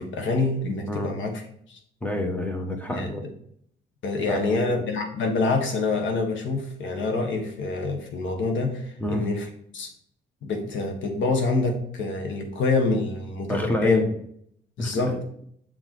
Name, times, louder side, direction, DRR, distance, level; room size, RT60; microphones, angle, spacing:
voice 1, 0.0-1.4 1.7-1.8 2.9-3.2 4.0-9.4 9.7-9.9 10.4-14.0 14.8-15.2, left 3 dB, 70° left, 4 dB, 1.6 m, -26 dB
voice 2, 2.0-3.2 4.3-4.8 9.0-9.3 13.5-14.0 14.8-15.4, left 1 dB, 10° left, 4 dB, 1.2 m, -28 dB
7.0 x 4.0 x 4.6 m, 0.66 s
cardioid pair, 90°, 20 cm